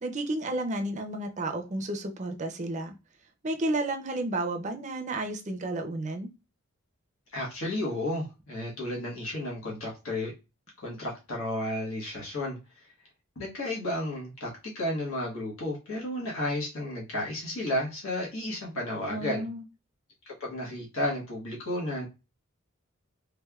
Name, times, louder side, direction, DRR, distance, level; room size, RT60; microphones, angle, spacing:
voice 1, 0.0-2.9 3.4-6.3 19.1-19.6, right 2 dB, 35° right, 5 dB, 0.5 m, -32 dB
voice 2, 7.3-10.3 10.8-12.6 13.3-19.4 20.2-22.1, left 1 dB, 70° left, -3 dB, 1.3 m, -32 dB
3.4 x 3.3 x 2.3 m, 0.27 s
head